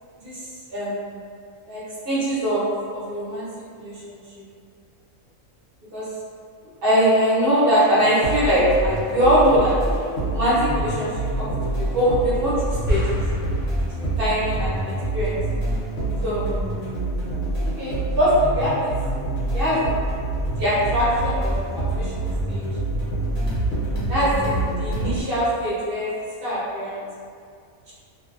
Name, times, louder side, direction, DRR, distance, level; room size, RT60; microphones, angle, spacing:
voice 1, 0.7-1.1 1.7-2.6 2.9-3.5 3.7-4.4 5.9-6.0 6.8-9.8 10.3-11.1 11.4-13.2 14.0-15.4 16.2-16.5 17.8-18.9 19.5-19.8 20.6-22.6 24.1-24.5 24.8-26.1 26.4-27.0, equal, 50° right, -9 dB, 0.8 m, -22 dB
sound 1, 8.0-25.2, right 2 dB, 65° left, 1.0 m, -26 dB
sound 2, 12.9-14.5, equal, 45° left, 0.7 m, -27 dB
2.5 x 2.1 x 2.4 m, 2.2 s
omnidirectional pair, 1.4 m